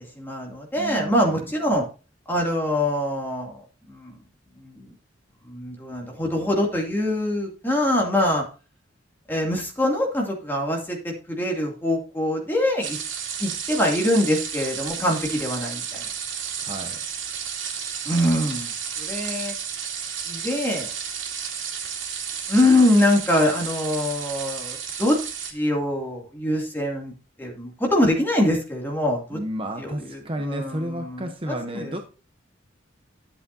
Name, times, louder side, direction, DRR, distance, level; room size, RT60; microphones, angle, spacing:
voice 1, 0.1-1.9 2.3-4.2 4.6-4.9 5.4-8.4 9.3-13.0 13.4-16.0 18.0-19.5 20.3-20.9 22.5-25.2 25.5-27.1 27.4-29.4 29.8-32.0, left 1 dB, 10° left, -1 dB, 2.5 m, -24 dB
voice 2, 0.8-1.5 16.6-17.0 29.3-32.0, right 1 dB, 30° right, 5 dB, 0.8 m, -31 dB
sound 1, 12.8-25.5, right 7 dB, 90° right, 2.4 m, -32 dB
12.0 x 7.8 x 2.7 m, 0.34 s
head